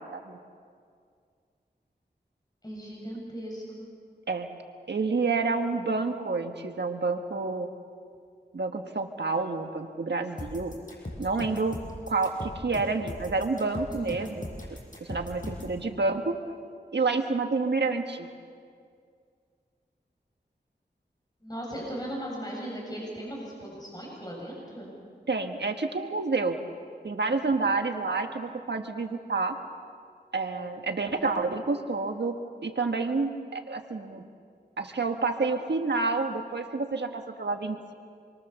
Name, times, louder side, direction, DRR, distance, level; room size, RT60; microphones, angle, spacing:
voice 1, 2.6-3.9 13.9-14.3 21.4-24.9 27.7-27.8, equal, 20° left, -3 dB, 7.3 m, -38 dB
voice 2, 4.9-7.7 8.5-10.8 11.2-11.8 12.1-14.5 15.0-16.4 16.9-18.3 25.3-26.6 27.0-29.6 30.3-32.3 32.6-34.2 34.8-37.9, right 3 dB, 85° right, 5 dB, 1.5 m, -29 dB
sound 1, 10.4-15.8, left 1 dB, 50° left, 6.4 m, -39 dB
27.5 x 23.5 x 7.0 m, 2.2 s
wide cardioid pair, 55°, 17 cm